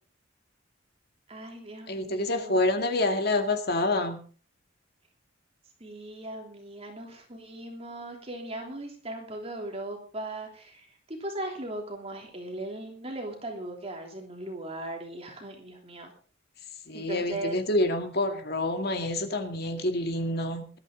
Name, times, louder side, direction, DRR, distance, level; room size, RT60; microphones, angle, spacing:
voice 1, 1.3-2.6 5.8-16.1 16.9-17.6, right 1 dB, 30° right, 2 dB, 3.2 m, -38 dB
voice 2, 1.9-4.2 16.9-20.8, left 2 dB, 55° left, 6 dB, 2.1 m, -27 dB
20.0 x 12.5 x 3.9 m, 0.39 s
head